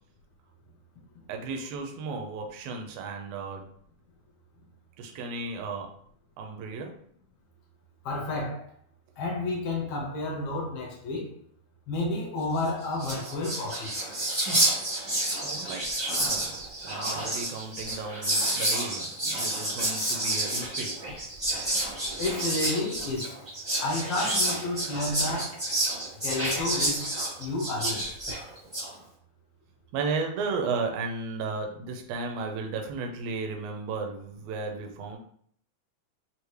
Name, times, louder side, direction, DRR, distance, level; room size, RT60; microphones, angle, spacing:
voice 1, 1.3-3.6 5.0-5.9 6.4-7.0 15.3-16.5 16.8-21.0 29.9-35.2, right 4 dB, 75° right, 1.7 m, -34 dB
voice 2, 8.0-8.7 9.2-11.4 11.9-14.0 22.2-23.3 23.8-25.6 26.2-27.1 27.4-28.1, left 2 dB, 70° left, 1.5 m, -31 dB
Whispering, 12.7-12.8 12.9-28.9, right 1 dB, 20° right, 0.6 m, -29 dB
4.9 x 2.8 x 3.2 m
omnidirectional pair, 3.4 m